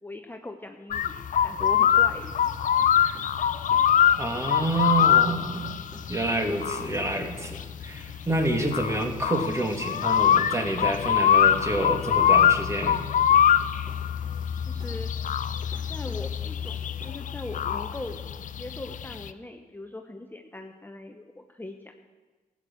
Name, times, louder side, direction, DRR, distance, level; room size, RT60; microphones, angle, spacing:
voice 1, 0.0-2.4 14.6-15.1 15.9-18.2 18.6-21.9, left 2 dB, 15° left, 4 dB, 1.0 m, -40 dB
sound 1, 0.9-19.3, left 9 dB, 65° left, 0.6 m, -24 dB
sound 2, 2.3-17.1, right 1 dB, 35° right, 3.8 m, -51 dB
voice 2, 4.2-5.7 6.1-13.0, right 1 dB, 20° right, 4 dB, 2.4 m, -28 dB
14.0 x 8.2 x 7.7 m, 1.3 s
cardioid pair, 65°, 14 cm